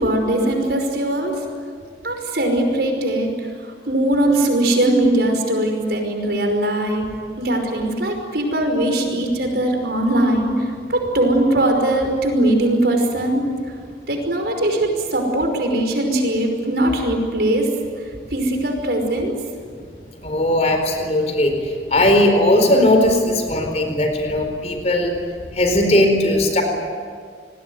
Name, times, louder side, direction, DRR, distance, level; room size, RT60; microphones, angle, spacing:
voice 1, 0.0-1.3 2.0-3.3 3.9-7.1 7.4-13.4 14.1-17.7 18.3-19.3, right 1 dB, 60° right, 4 dB, 5.4 m, -20 dB
voice 2, 20.2-25.1 25.5-26.6, left 1 dB, 35° left, 5 dB, 4.3 m, -18 dB
28.5 x 20.0 x 9.6 m, 2.1 s
head